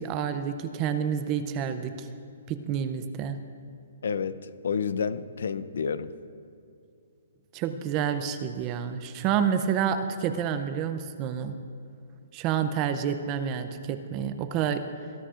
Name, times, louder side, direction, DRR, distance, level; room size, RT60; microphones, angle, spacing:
voice 1, 0.0-2.1 2.5-3.4 7.5-11.5 12.3-14.8, right 8 dB, 20° right, 9 dB, 0.5 m, -29 dB
voice 2, 4.0-6.1, left 6 dB, 70° left, 14 dB, 0.5 m, -30 dB
22.0 x 13.0 x 2.5 m, 2.5 s
hypercardioid pair, 170°, 0 cm